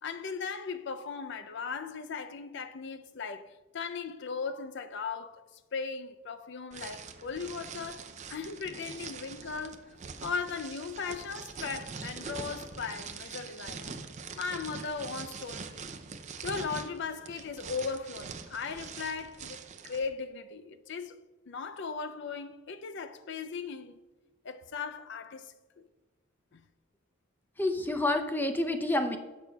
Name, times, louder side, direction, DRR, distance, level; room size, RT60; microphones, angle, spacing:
voice 1, 0.0-5.5 5.7-14.0 14.3-16.0 16.4-24.0 24.4-25.9 26.5-26.6, left 5 dB, 60° left, 0.5 m, -38 dB
sound 1, 6.7-20.1, right 5 dB, 35° right, 0.5 m, -43 dB
voice 2, 27.6-29.2, left 2 dB, 10° left, 0.5 m, -28 dB
10.5 x 6.8 x 2.3 m
head